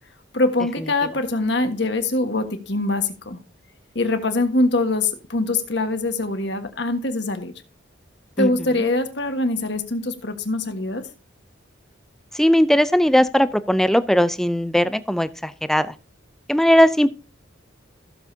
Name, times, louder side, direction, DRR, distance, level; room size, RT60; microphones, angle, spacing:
voice 1, 0.3-3.4 3.9-7.5 8.4-11.0, left 2 dB, 60° left, 1.4 m, -23 dB
voice 2, 12.3-15.9 16.5-17.1, equal, ahead, 0.4 m, -18 dB
15.5 x 7.4 x 2.7 m
head